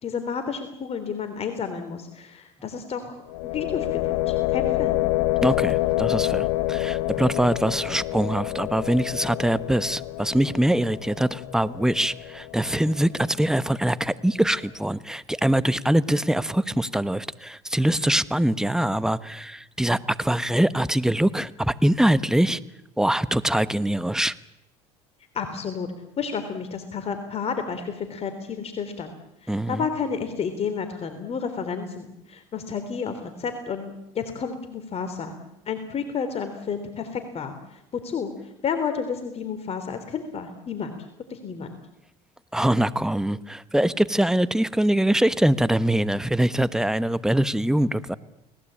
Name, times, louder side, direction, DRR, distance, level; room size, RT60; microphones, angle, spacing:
voice 1, 0.0-5.0 25.3-25.9 26.2-29.2 29.4-35.3 35.7-41.0 41.3-41.8, left 6 dB, 40° left, 8 dB, 3.3 m, -31 dB
sound 1, 3.3-13.1, left 17 dB, 90° left, 0.9 m, -27 dB
voice 2, 5.4-22.6 23.0-24.3 29.5-29.8 42.5-48.2, right 1 dB, 5° right, 15 dB, 1.2 m, -23 dB
30.0 x 19.5 x 8.8 m, 0.88 s
supercardioid pair, 90°, 15 cm